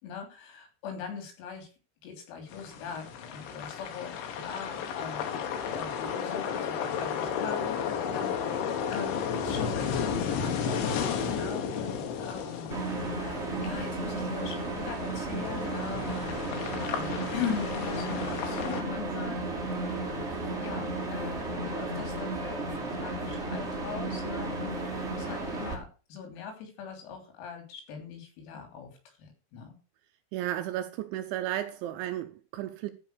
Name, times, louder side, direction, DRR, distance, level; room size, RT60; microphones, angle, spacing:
voice 1, 0.0-1.7 2.0-20.3 20.6-29.8, left 7 dB, 85° left, 6.0 m, -41 dB
sound 1, 2.5-18.8, left 7 dB, 70° left, 3.8 m, -33 dB
sound 2, 12.7-25.8, right 2 dB, 20° right, 1.8 m, -34 dB
voice 2, 30.3-32.9, right 12 dB, 80° right, 2.8 m, -33 dB
14.0 x 5.8 x 6.6 m
omnidirectional pair, 6.0 m